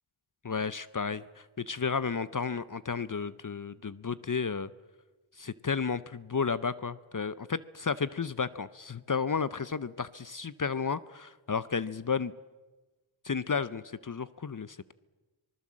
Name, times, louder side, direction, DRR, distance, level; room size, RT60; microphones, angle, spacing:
voice 1, 0.4-4.7 5.4-12.3 13.2-14.9, left 5 dB, 40° left, 16 dB, 0.6 m, -32 dB
25.5 x 20.0 x 7.5 m, 1.2 s
wide cardioid pair, 70°, 49 cm